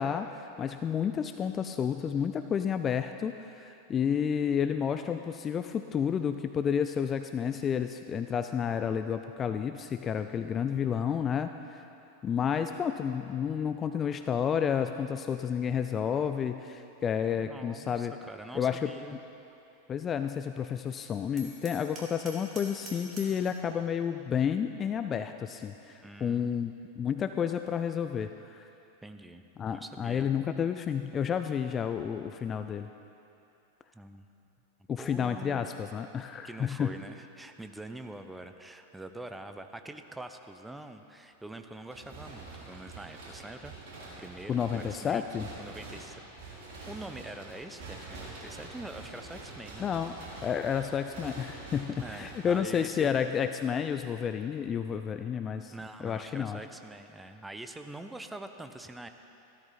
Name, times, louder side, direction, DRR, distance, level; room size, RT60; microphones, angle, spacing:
voice 1, 0.0-11.8 12.2-18.1 18.5-18.9 19.9-28.7 29.6-32.9 34.9-36.9 44.5-45.5 49.8-50.1 50.4-55.7 56.0-56.6, left 7 dB, 25° left, 9 dB, 0.4 m, -31 dB
voice 2, 17.4-19.2 26.0-26.6 29.0-29.4 29.7-30.3 33.9-34.3 35.0-35.7 36.4-43.7 44.2-45.3 45.6-46.2 46.9-49.9 52.0-53.1 55.7-59.1, right 2 dB, 5° right, 7 dB, 0.6 m, -44 dB
Hammer, 21.4-23.5, right 2 dB, 30° right, 2.7 m, -46 dB
sound 1, 41.9-53.1, right 3 dB, 50° right, 3.2 m, -46 dB
14.0 x 13.0 x 4.1 m, 2.8 s
figure-of-eight pair, 90°, 0 cm